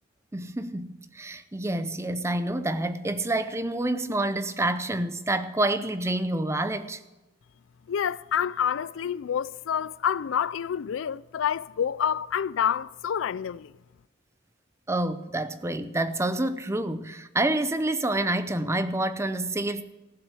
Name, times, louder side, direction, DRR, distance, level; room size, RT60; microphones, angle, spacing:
voice 1, 0.3-7.0 14.9-19.8, right 1 dB, 15° right, 0.6 m, -28 dB
voice 2, 7.9-13.7, left 8 dB, 90° left, 0.4 m, -28 dB
15.0 x 7.3 x 8.3 m
head